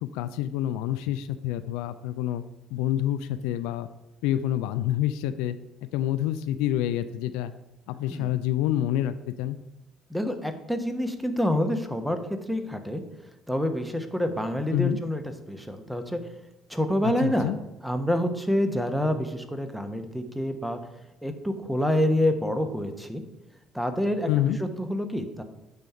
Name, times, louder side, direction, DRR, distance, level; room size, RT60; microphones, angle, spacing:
voice 1, 0.0-2.4 2.7-3.9 4.2-7.5 7.9-9.6 14.7-15.0 17.0-17.6 24.3-24.6, left 12 dB, 75° left, 12 dB, 0.3 m, -27 dB
voice 2, 10.1-13.0 13.5-15.2 15.5-16.2 16.7-17.5 17.8-20.8 21.2-23.2 23.7-25.4, left 1 dB, 5° right, 7 dB, 1.1 m, -27 dB
9.0 x 3.5 x 5.6 m, 0.98 s
hypercardioid pair, 60°, 0 cm